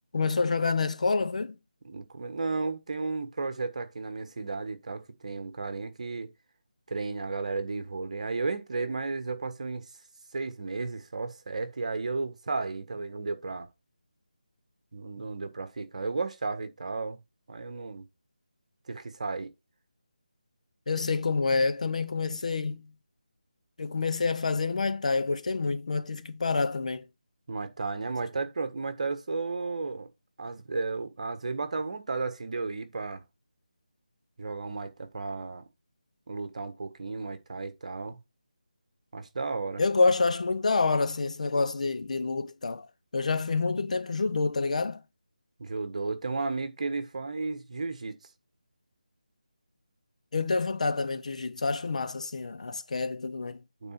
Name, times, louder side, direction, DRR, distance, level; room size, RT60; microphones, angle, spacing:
voice 1, 0.1-1.6 20.9-22.9 23.8-27.1 39.8-42.9 43.1-45.0 50.3-53.6, left 4 dB, 55° left, 1.0 m, -27 dB
voice 2, 1.8-6.3 6.9-9.9 10.3-13.7 14.9-17.2 17.5-18.0 18.9-19.5 27.5-30.1 30.4-33.2 34.4-35.6 36.3-38.2 39.1-39.8 45.6-48.2 53.8-53.9, right 3 dB, 50° right, 1.5 m, -33 dB
9.0 x 4.0 x 4.3 m
figure-of-eight pair, 165°, 5 cm